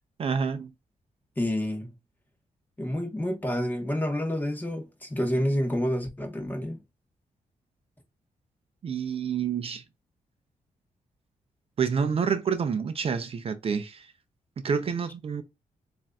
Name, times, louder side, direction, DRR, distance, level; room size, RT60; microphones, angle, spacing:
voice 1, 0.2-0.7 8.8-9.8 11.8-14.1 14.6-15.4, right 6 dB, 45° right, 0.5 m, -28 dB
voice 2, 1.4-1.9 2.8-6.8, equal, 15° left, 1.1 m, -28 dB
7.4 x 2.6 x 2.3 m
wide cardioid pair, 145°, 14 cm